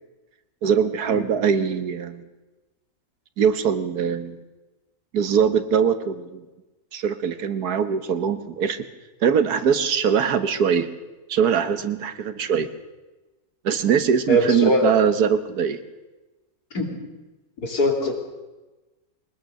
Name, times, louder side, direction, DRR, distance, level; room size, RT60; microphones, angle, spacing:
voice 1, 0.6-2.2 3.4-4.4 5.1-6.4 6.9-8.8 9.2-10.9 11.3-12.7 13.6-15.8, right 7 dB, 85° right, 11 dB, 1.7 m, -22 dB
voice 2, 14.3-14.9 16.7-16.9 17.6-18.2, equal, 85° left, 3 dB, 3.5 m, -21 dB
22.0 x 19.5 x 6.6 m, 1.1 s
omnidirectional pair, 1.6 m